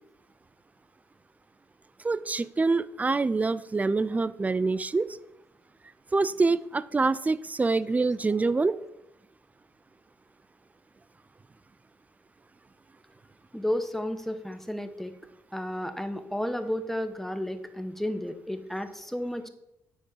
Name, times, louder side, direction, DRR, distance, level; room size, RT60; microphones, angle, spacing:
voice 1, 2.0-5.1 6.1-8.8, right 3 dB, 20° right, 15 dB, 0.3 m, -25 dB
voice 2, 13.5-15.1 15.5-19.5, left 1 dB, 5° left, 9 dB, 0.8 m, -32 dB
7.2 x 4.4 x 4.8 m, 0.84 s
figure-of-eight pair, 45°, 9 cm